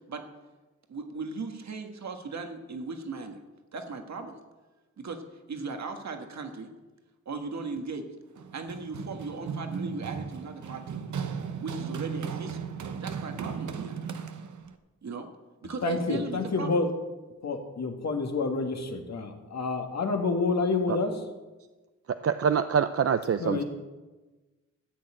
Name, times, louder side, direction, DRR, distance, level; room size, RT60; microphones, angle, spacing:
voice 1, 0.9-3.4 3.7-4.4 5.0-6.7 7.2-8.1 8.5-11.0 11.6-12.6 13.0-14.0 15.0-15.3 15.6-16.7, right 4 dB, 65° right, 5 dB, 1.5 m, -37 dB
Run, 8.4-14.7, right 6 dB, 85° right, 0.9 m, -36 dB
voice 2, 15.8-16.9 17.4-21.2 23.4-23.6, left 3 dB, 65° left, 3 dB, 1.9 m, -28 dB
voice 3, 22.2-23.6, right 7 dB, 50° right, 10 dB, 0.5 m, -25 dB
14.0 x 6.5 x 8.9 m, 1.2 s
wide cardioid pair, 95°, 29 cm